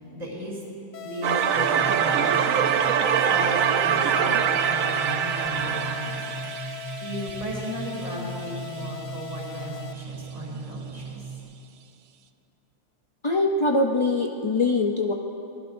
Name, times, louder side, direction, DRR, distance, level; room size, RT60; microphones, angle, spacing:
voice 1, 0.1-0.6 1.0-2.8 3.3-6.2 7.0-11.3, equal, 30° right, -5 dB, 3.5 m, -35 dB
sound 1, 0.9-9.9, left 10 dB, 70° left, 1.0 m, -40 dB
sound 2, 1.2-8.1, right 8 dB, 80° right, 1.1 m, -24 dB
sound 3, 1.5-11.4, right 4 dB, 5° right, 2.6 m, -39 dB
voice 2, 13.2-15.1, left 2 dB, 40° left, 1 dB, 0.4 m, -23 dB
26.0 x 19.0 x 2.6 m, 2.8 s
omnidirectional pair, 1.4 m